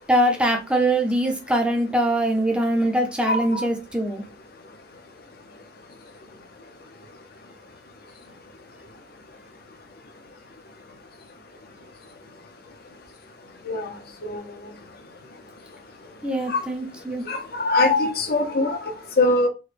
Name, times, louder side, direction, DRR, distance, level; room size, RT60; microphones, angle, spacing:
voice 1, 0.1-4.2 16.2-17.2, right 1 dB, 5° right, 0.6 m, -22 dB
voice 2, 3.3-3.6 13.7-13.9 14.2-14.4 16.5-16.6 17.2-19.5, left 2 dB, 55° left, 0.7 m, -22 dB
3.7 x 2.2 x 3.2 m
head